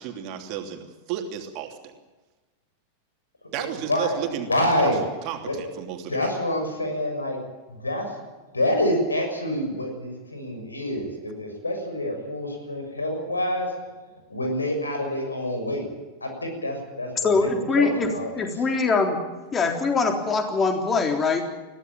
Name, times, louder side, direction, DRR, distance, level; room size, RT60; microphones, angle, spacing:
voice 1, 0.0-1.9 3.5-4.5 4.8-4.9 5.2-6.2, right 10 dB, 40° right, 5 dB, 3.0 m, -33 dB
voice 2, 3.6-4.2 4.5-5.0 5.5-5.7 6.1-7.4 7.7-8.3 8.5-13.7 14.3-15.9 16.2-18.6, left 1 dB, 80° left, 4 dB, 6.5 m, -27 dB
voice 3, 17.2-18.1 18.4-19.2 19.5-21.5, left 4 dB, 20° left, 4 dB, 3.6 m, -22 dB
22.0 x 17.0 x 8.9 m, 1.2 s
figure-of-eight pair, 90°, 0 cm